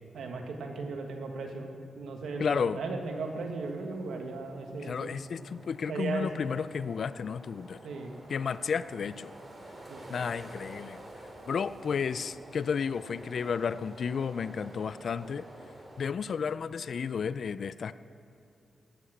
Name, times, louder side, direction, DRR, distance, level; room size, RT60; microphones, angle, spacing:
voice 1, 0.1-5.2 5.9-6.3 7.8-8.2 9.9-10.0, right 3 dB, 85° right, 3 dB, 1.5 m, -36 dB
voice 2, 2.4-2.8 4.8-7.8 8.3-9.3 10.1-11.0 11.5-15.5 16.0-17.9, left 6 dB, 60° left, 15 dB, 0.4 m, -32 dB
sound 1, 3.0-16.1, right 1 dB, 35° right, 2.6 m, -50 dB
12.5 x 8.4 x 7.9 m, 2.7 s
cardioid pair, 85°, 0 cm